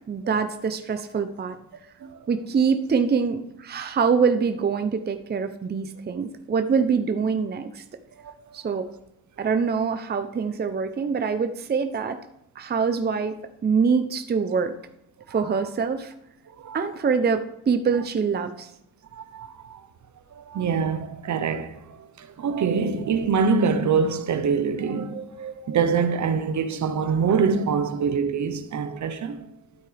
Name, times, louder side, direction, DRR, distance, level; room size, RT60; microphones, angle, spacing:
voice 1, 0.0-1.6 2.3-7.8 8.5-8.9 9.4-12.2 12.6-13.4 13.6-14.8 15.3-16.1 16.7-18.7, right 5 dB, 30° right, 0.7 m, -24 dB
voice 2, 19.1-19.8 20.3-29.5, right 5 dB, 55° right, 1.0 m, -25 dB
12.5 x 8.5 x 3.4 m
cardioid pair, 90°, 35 cm